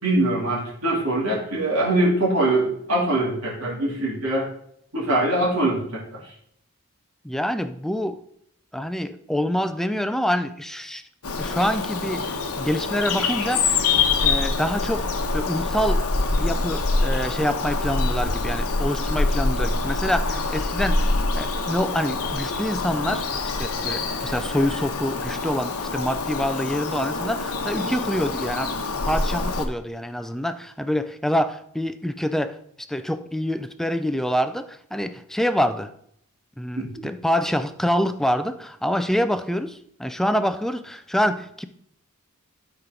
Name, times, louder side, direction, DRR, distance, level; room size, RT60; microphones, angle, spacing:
voice 1, 0.0-4.5 4.9-6.0 36.8-37.1, right 1 dB, 75° right, -5 dB, 2.9 m, -23 dB
voice 2, 7.2-8.2 8.7-11.0 11.4-23.3 23.6-28.8 29.0-32.6 32.9-35.9 36.6-41.7, equal, ahead, 10 dB, 0.4 m, -26 dB
Bird vocalization bird call bird song, 11.2-29.7, left 3 dB, 90° left, 1.2 m, -25 dB
12.0 x 4.4 x 5.2 m, 0.69 s
head